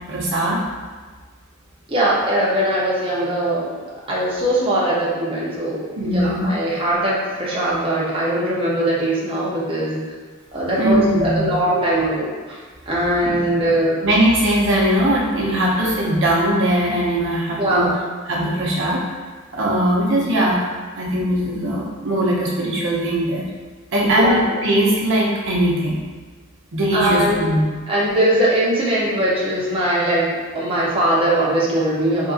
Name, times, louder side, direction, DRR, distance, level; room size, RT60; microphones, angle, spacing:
voice 1, 0.1-0.6 6.0-6.5 10.8-11.6 13.2-13.4 14.0-17.9 18.3-19.1 19.5-20.6 21.0-23.4 23.9-26.0 26.7-27.6, right 1 dB, 60° right, -4 dB, 0.7 m, -20 dB
voice 2, 1.9-3.6 4.1-10.0 10.5-12.6 12.9-14.1 17.6-17.9 24.2-24.6 26.9-27.5 27.9-32.3, right 1 dB, 25° right, -7 dB, 0.6 m, -20 dB
3.6 x 2.5 x 2.4 m, 1.4 s
head